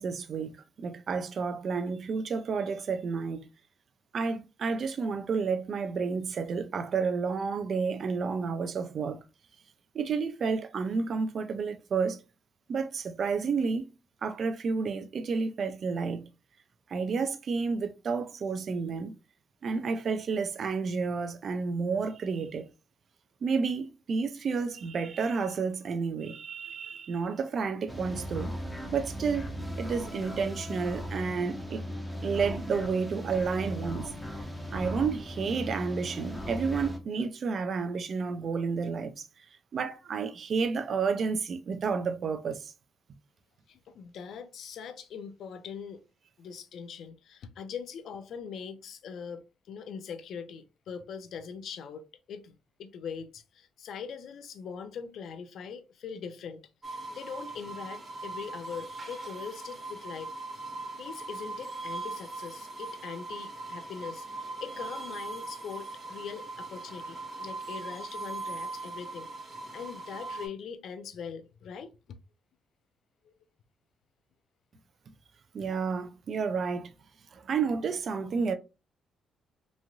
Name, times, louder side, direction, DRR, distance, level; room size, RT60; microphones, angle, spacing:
voice 1, 0.0-3.5 4.1-9.2 9.9-12.2 12.7-13.8 14.2-16.2 16.9-19.1 19.6-22.6 23.4-28.6 28.9-31.8 32.2-34.1 34.7-39.3 39.7-42.7 75.5-76.9 77.3-78.5, right 5 dB, 55° right, 0.4 m, -31 dB
sound 1, 27.9-37.0, equal, 5° left, 0.7 m, -37 dB
voice 2, 43.7-46.0 46.4-49.4 49.7-56.6 57.1-60.3 61.0-72.2 73.2-73.3, left 6 dB, 70° left, 0.4 m, -42 dB
sound 2, 56.8-70.5, right 2 dB, 30° right, 0.9 m, -40 dB
3.0 x 2.6 x 2.3 m
cardioid pair, 90°, 0 cm